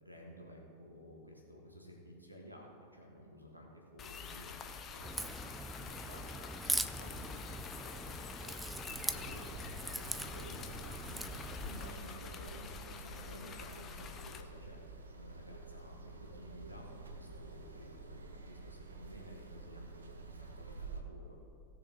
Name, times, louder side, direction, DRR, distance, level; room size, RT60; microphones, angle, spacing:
voice 1, 0.0-4.6 4.9-8.8 9.2-11.3 11.6-14.8 15.1-21.4, equal, 90° right, 0 dB, 1.8 m, -53 dB
sound 1, 4.0-14.4, left 6 dB, 25° left, 0.8 m, -47 dB
Crack, 5.0-11.9, right 1 dB, 5° right, 0.4 m, -41 dB
sound 2, 8.9-21.0, right 3 dB, 70° right, 0.9 m, -50 dB
17.5 x 6.8 x 3.8 m, 2.5 s
figure-of-eight pair, 90°, 0 cm